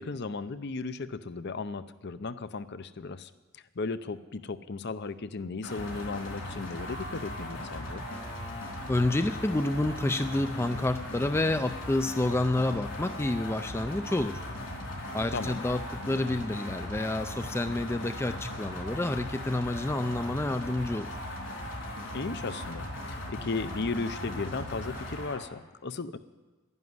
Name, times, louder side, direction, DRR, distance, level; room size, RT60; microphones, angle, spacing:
voice 1, 0.0-8.0 15.3-15.6 22.1-26.2, left 3 dB, 55° left, 13 dB, 0.6 m, -36 dB
sound 1, 5.6-25.4, left 1 dB, 70° left, 3.9 m, -38 dB
voice 2, 8.9-14.4 15.1-21.1, left 2 dB, 10° left, 9 dB, 0.4 m, -29 dB
12.0 x 11.0 x 9.5 m, 1.2 s
head